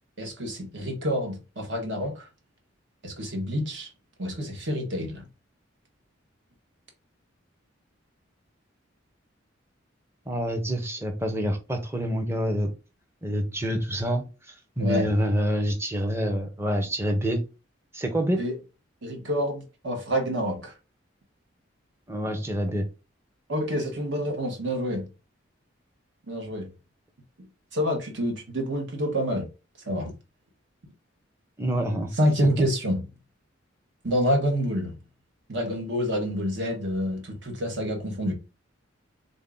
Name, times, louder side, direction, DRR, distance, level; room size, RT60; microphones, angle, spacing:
voice 1, 0.2-2.3 3.0-3.9 4.2-5.2 14.8-15.1 18.4-18.5 19.0-20.7 23.5-25.1 26.3-26.7 27.4-29.5 29.8-30.1 32.2-33.0 34.0-34.9 35.5-38.3, equal, 65° right, 1.2 m, -27 dB
voice 2, 10.3-12.7 13.2-14.2 14.8-17.4 17.9-18.4 22.1-22.9 31.6-32.1 32.6-32.7, equal, 15° right, 0.7 m, -27 dB
3.9 x 2.7 x 3.6 m
head